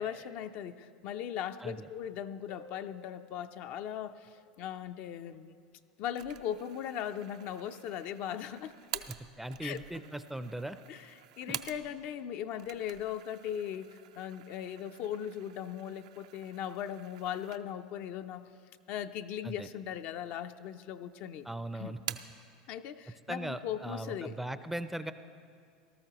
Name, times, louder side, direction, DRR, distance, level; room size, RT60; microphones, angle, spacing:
voice 1, 0.0-5.6 6.0-9.0 9.6-9.8 10.9-18.5 18.9-21.5 21.8-21.9 22.7-24.4, left 9 dB, 55° left, 9 dB, 0.5 m, -39 dB
Harp, 2.5-5.0 8.5-8.6, left 4 dB, 85° left, 1.6 m, -56 dB
sound 1, 6.2-12.2 12.5-18.0 18.4-18.5 19.3-20.0 20.3-21.1 21.4-22.5, right 12 dB, 75° right, 0.5 m, -47 dB
voice 2, 9.4-10.8 11.5-11.6 19.4-19.7 21.4-22.2 23.3-25.1, right 1 dB, 5° right, 12 dB, 0.4 m, -39 dB
18.0 x 13.0 x 3.0 m, 2.3 s
hypercardioid pair, 95°, 3 cm